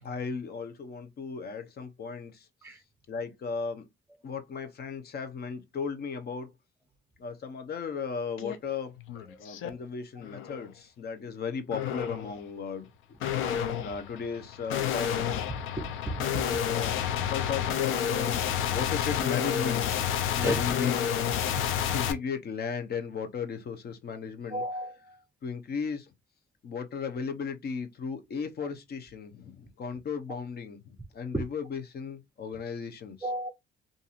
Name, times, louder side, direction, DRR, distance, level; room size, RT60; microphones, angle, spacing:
voice 1, 0.0-2.8 3.1-3.9 4.2-6.5 7.2-9.0 9.4-13.2 13.7-15.2 16.2-17.0 17.3-18.4 18.7-21.0 21.9-24.6 25.4-26.1 26.6-33.2, left 6 dB, 55° left, 0.8 m, -36 dB
sound 1, 8.4-8.6 9.0-9.7 10.2-10.6 11.7-12.3 13.2-22.1, left 9 dB, 90° left, 0.5 m, -30 dB
voice 2, 15.8-16.1 20.4-20.6 21.6-21.7 24.5-25.2 33.2-33.5, right 2 dB, 10° right, 0.6 m, -34 dB
2.7 x 2.6 x 2.4 m
cardioid pair, 90°, 20 cm